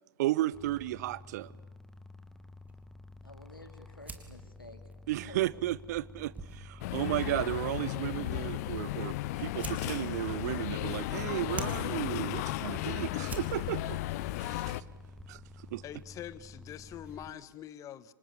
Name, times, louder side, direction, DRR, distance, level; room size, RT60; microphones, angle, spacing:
voice 1, 0.2-1.5 5.1-14.0 14.5-14.8 15.3-15.8, right 15 dB, 50° right, 0.9 m, -34 dB
sound 1, 0.5-17.3, left 2 dB, 5° left, 1.8 m, -51 dB
sound 2, 0.7-17.6, right 4 dB, 15° right, 3.2 m, -50 dB
voice 2, 3.2-4.8 5.2-5.5 13.6-14.1, left 1 dB, 90° left, 3.1 m, -51 dB
sound 3, 6.8-14.8, left 16 dB, 50° left, 0.9 m, -35 dB
voice 3, 15.8-18.1, left 11 dB, 30° left, 1.3 m, -44 dB
30.0 x 26.5 x 7.0 m
figure-of-eight pair, 95°, 11 cm